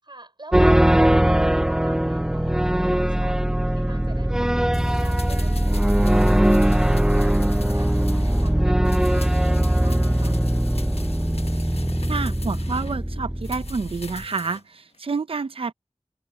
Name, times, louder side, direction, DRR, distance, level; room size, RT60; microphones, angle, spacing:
voice 1, 0.0-10.4, right 2 dB, 50° right, 5.9 m, -46 dB
sound 1, 0.5-14.2, right 1 dB, 5° right, 0.3 m, -20 dB
sound 2, 4.7-8.6 8.8-13.0 13.4-14.6 14.9-15.0, left 3 dB, 80° left, 1.2 m, -42 dB
voice 2, 12.1-15.7, right 4 dB, 65° right, 0.6 m, -29 dB
wide cardioid pair, 55°, 10 cm